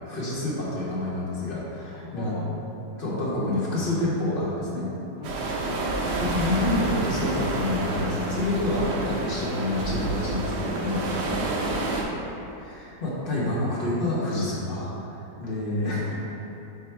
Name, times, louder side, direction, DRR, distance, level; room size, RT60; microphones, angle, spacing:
voice 1, 0.0-2.3 3.0-4.9 6.2-11.1 12.6-14.9 15.4-16.1, left 2 dB, 35° left, -6 dB, 1.2 m, -28 dB
voice 2, 1.9-2.5 5.2-5.8 11.3-11.7, left 4 dB, 70° left, -3 dB, 0.9 m, -41 dB
sound 1, 5.2-12.0, right 2 dB, 75° right, 1.3 m, -29 dB
7.1 x 3.1 x 4.5 m, 2.9 s
omnidirectional pair, 1.8 m